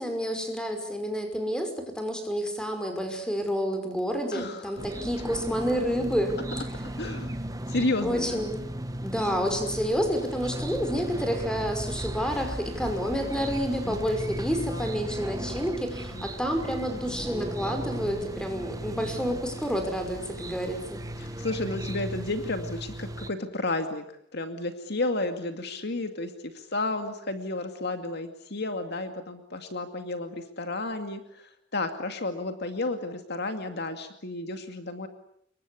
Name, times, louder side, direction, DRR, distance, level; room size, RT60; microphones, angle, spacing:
voice 1, 0.0-6.4 8.0-8.7 9.0-21.0, equal, 5° left, 6 dB, 5.5 m, -29 dB
voice 2, 4.3-4.8 6.5-6.6 7.0-7.4 7.7-8.4 13.8-14.3 14.7-15.1 16.1-16.3 21.2-24.0 24.3-35.1, left 2 dB, 60° left, 7 dB, 2.3 m, -32 dB
sound 1, 4.8-23.3, right 1 dB, 20° right, 1.5 m, -36 dB
27.5 x 23.0 x 8.6 m, 0.70 s
head